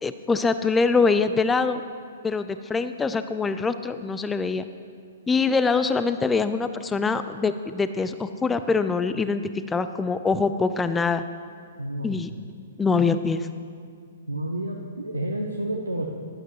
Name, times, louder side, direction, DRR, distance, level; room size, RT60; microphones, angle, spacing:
voice 1, 0.0-1.8 2.2-4.6 5.3-9.4 9.7-11.2 12.0-12.3 12.8-13.5, left 4 dB, 10° left, 11 dB, 0.4 m, -24 dB
voice 2, 11.8-12.2 14.3-16.1, right 1 dB, 85° right, -1 dB, 0.8 m, -30 dB
14.5 x 11.0 x 3.1 m, 2.1 s
figure-of-eight pair, 115°, 0 cm